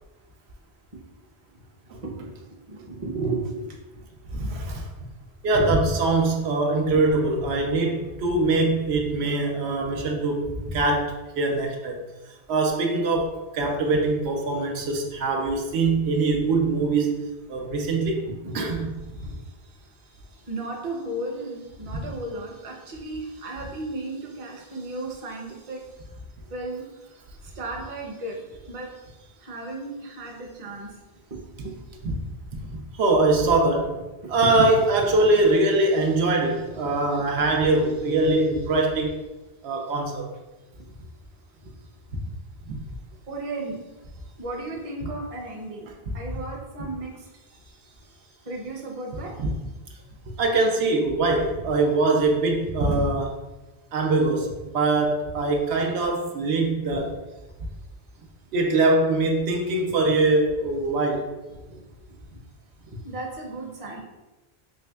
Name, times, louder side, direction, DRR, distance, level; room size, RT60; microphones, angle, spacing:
voice 1, 1.5-4.1 4.4-4.6 5.0-5.1 6.9-7.0 18.4-18.6 19.2-25.9 26.5-26.8 27.1-30.9 31.3-31.8 32.7-32.8 34.2-34.7 36.8-37.2 38.0-38.1 40.7-41.1 41.6-41.7 43.3-43.8 44.4-45.9 46.1-49.3 50.2-50.3 56.9-57.0 61.7-61.8 62.9-64.0, right 2 dB, 40° right, -1 dB, 0.6 m, -35 dB
voice 2, 4.3-4.8 5.4-12.0 12.5-17.2 17.5-18.2 18.5-19.0 32.0-32.1 32.7-34.0 34.3-39.2 39.6-40.2 42.6-42.8 49.4-49.5 50.4-53.4 53.9-57.1 58.5-61.3, right 2 dB, 90° right, 1 dB, 0.9 m, -23 dB
3.6 x 3.2 x 2.2 m, 1.1 s
omnidirectional pair, 1.0 m